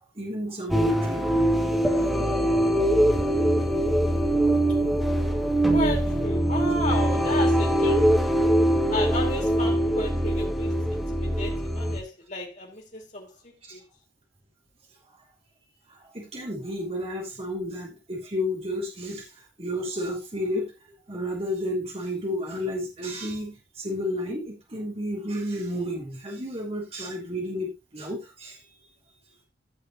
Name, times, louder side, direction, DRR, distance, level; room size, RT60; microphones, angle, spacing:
voice 1, 0.2-1.2 4.8-5.0 16.1-19.3 19.6-20.7 21.1-28.6, left 1 dB, 35° right, 3.5 m, -31 dB
sound 1, 0.7-12.0, right 1 dB, ahead, 2.4 m, -23 dB
voice 2, 5.7-8.1 8.9-13.8, left 2 dB, 45° left, 4.7 m, -33 dB
16.5 x 6.1 x 3.1 m
head